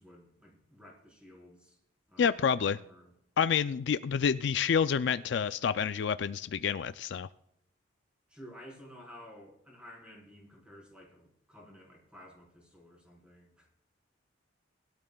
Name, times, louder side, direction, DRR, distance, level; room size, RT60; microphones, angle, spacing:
voice 1, 0.0-1.8 2.1-3.1 8.3-13.7, equal, 5° right, -2 dB, 4.3 m, -53 dB
voice 2, 2.2-2.8 3.4-7.3, left 7 dB, 60° left, 13 dB, 0.3 m, -28 dB
20.5 x 12.5 x 2.3 m, 0.77 s
head